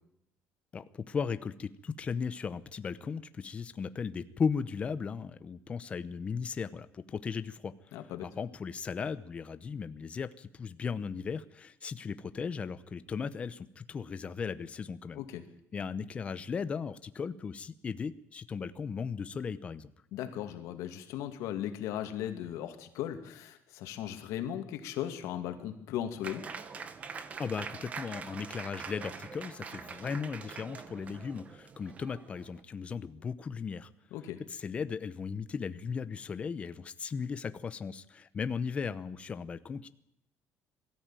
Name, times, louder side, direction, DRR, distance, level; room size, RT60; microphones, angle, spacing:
voice 1, 0.7-7.7 8.2-15.2 15.7-19.9 27.4-33.9 34.5-39.9, left 6 dB, 25° left, 13 dB, 0.8 m, -36 dB
voice 2, 7.9-8.3 15.2-15.4 20.1-26.4 34.1-34.4, left 11 dB, 90° left, 7 dB, 2.5 m, -37 dB
Applause, 26.2-32.6, right 5 dB, 25° right, 1.1 m, -44 dB
22.0 x 13.5 x 9.0 m, 0.78 s
cardioid pair, 175°, 5 cm